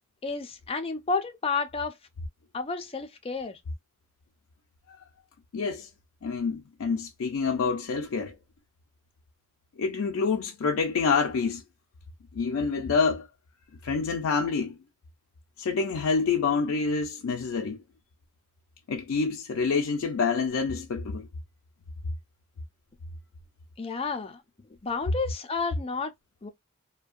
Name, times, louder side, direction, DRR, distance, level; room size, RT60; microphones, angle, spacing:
voice 1, 0.2-2.0 2.5-3.6 23.8-24.4 24.8-26.1 26.4-26.5, left 4 dB, 25° left, 0.5 m, -31 dB
voice 2, 5.5-5.9 6.2-8.3 9.8-11.6 12.3-13.3 13.8-14.8 15.6-17.8 18.9-21.3, left 5 dB, 80° left, 0.4 m, -27 dB
2.6 x 2.2 x 2.3 m
head